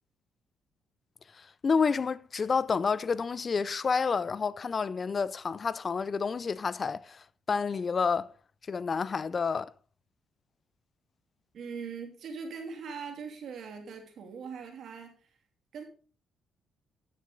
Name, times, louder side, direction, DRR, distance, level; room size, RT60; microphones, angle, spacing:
voice 1, 1.3-8.3 8.7-9.7, left 5 dB, 40° left, 0.4 m, -29 dB
voice 2, 11.5-15.1 15.7-15.8, right 5 dB, 65° right, 2.6 m, -41 dB
12.0 x 6.6 x 3.8 m
cardioid pair, 90°, 0 cm